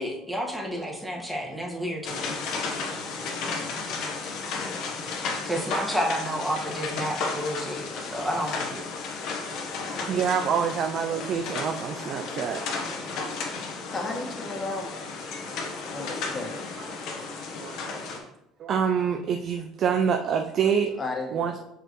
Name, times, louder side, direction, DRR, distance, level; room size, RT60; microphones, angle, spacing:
voice 1, 0.0-2.4 5.4-8.8, equal, 5° right, -2 dB, 1.7 m, -30 dB
sound 1, 2.0-18.2, left 4 dB, 65° left, 1.2 m, -33 dB
voice 2, 10.1-12.6 17.6-18.1 18.6-20.9 21.3-21.6, right 7 dB, 55° right, 4 dB, 0.5 m, -26 dB
voice 3, 13.9-15.1 15.8-16.6 21.0-21.6, left 2 dB, 30° left, 1 dB, 1.5 m, -34 dB
6.7 x 5.0 x 3.1 m, 0.85 s
supercardioid pair, 80°, 0 cm